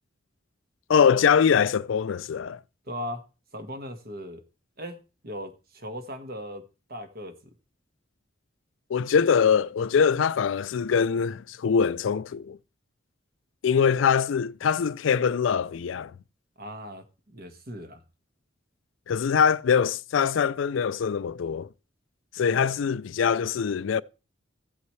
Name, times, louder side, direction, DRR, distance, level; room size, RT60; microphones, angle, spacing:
voice 1, 0.9-2.6 8.9-12.6 13.6-16.1 19.1-21.7 22.3-24.0, left 6 dB, 75° left, 0.4 m, -23 dB
voice 2, 2.9-3.2 3.5-4.4 4.8-5.0 5.2-7.5 16.6-18.0 22.4-22.5, equal, 50° right, 1.6 m, -38 dB
15.0 x 8.1 x 3.2 m
head